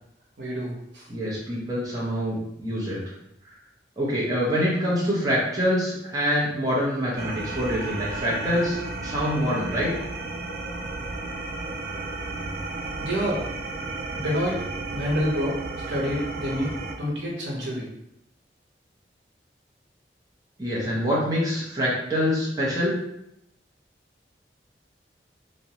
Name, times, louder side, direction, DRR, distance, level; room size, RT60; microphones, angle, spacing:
voice 1, 0.4-0.7 0.9-1.1 13.0-13.4 14.2-14.6 14.9-15.6 15.9-17.9, equal, 90° right, -4 dB, 0.8 m, -27 dB
voice 2, 1.1-3.0 4.0-9.9 20.6-23.0, equal, 20° right, -7 dB, 0.6 m, -25 dB
sound 1, 7.2-17.0, right 3 dB, 60° right, 0.3 m, -33 dB
2.4 x 2.1 x 2.8 m, 0.79 s
head